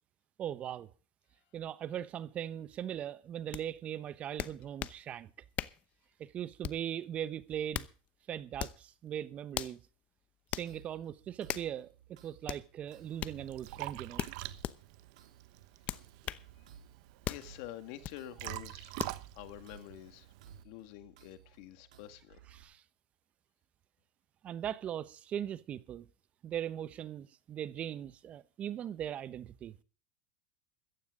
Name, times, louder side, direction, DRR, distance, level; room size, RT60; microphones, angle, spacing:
voice 1, 0.4-0.9 1.5-5.3 6.2-7.9 8.3-9.8 10.5-14.2 22.5-22.8 24.4-26.1 26.4-29.7, right 10 dB, 35° right, 1.0 m, -39 dB
sound 1, 3.5-3.6 4.4-5.0 5.6-5.8 6.6-6.9 7.5-7.9 8.6-8.8 9.5-9.8 10.5-10.7 11.5-11.7 12.5-12.6 13.2-13.4 14.2-14.8 15.9-16.5 17.2-17.5 18.0-18.2 19.0-19.2, left 12 dB, 40° left, 0.8 m, -38 dB
sound 2, 10.7-22.6, right 8 dB, 80° right, 4.0 m, -59 dB
Liquid, 12.9-20.6, right 19 dB, 65° right, 1.1 m, -46 dB
voice 2, 17.3-20.3 20.6-22.4, left 13 dB, 60° left, 1.9 m, -48 dB
14.5 x 14.5 x 3.8 m
hypercardioid pair, 105°, 4 cm